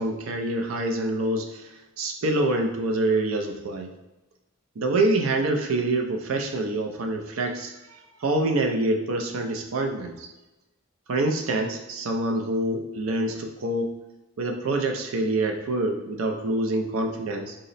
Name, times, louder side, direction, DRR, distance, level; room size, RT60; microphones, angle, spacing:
voice 1, 0.0-3.9 4.8-10.3 11.1-13.9 14.4-17.5, right 2 dB, 85° right, 4 dB, 0.5 m, -26 dB
3.8 x 2.1 x 4.0 m, 1.0 s
head